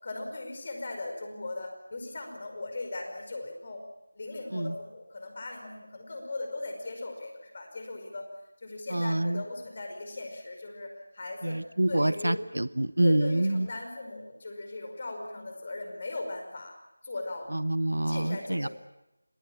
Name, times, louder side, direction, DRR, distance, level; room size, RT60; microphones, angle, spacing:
voice 1, 0.0-3.8 4.1-8.3 8.6-11.6 11.9-12.4 13.0-16.7 17.0-17.5 18.0-18.7, left 2 dB, 35° left, 4 dB, 5.1 m, -38 dB
voice 2, 8.9-9.4 11.4-13.7 17.5-18.7, right 1 dB, 75° right, 16 dB, 0.8 m, -27 dB
27.0 x 19.0 x 7.2 m, 0.92 s
figure-of-eight pair, 165°, 0 cm